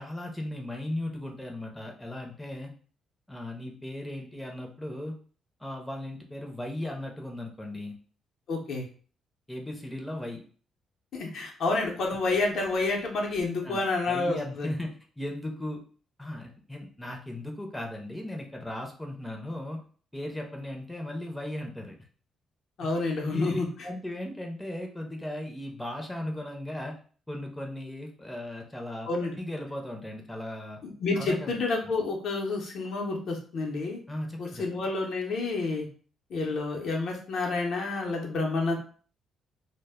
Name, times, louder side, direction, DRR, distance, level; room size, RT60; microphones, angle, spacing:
voice 1, 0.0-2.7 3.3-5.2 5.6-8.0 9.5-10.4 13.6-15.8 16.2-19.8 20.1-21.9 22.8-27.0 27.3-29.1 29.4-30.8 31.1-31.9 34.1-34.7, left 1 dB, 5° left, 1 dB, 0.5 m, -37 dB
voice 2, 8.5-8.9 11.1-14.7 22.8-23.7 29.1-29.4 30.8-34.0 34.4-35.9 36.3-38.8, left 3 dB, 65° left, 1 dB, 0.6 m, -29 dB
2.1 x 2.0 x 3.4 m, 0.42 s
cardioid pair, 90°, 0 cm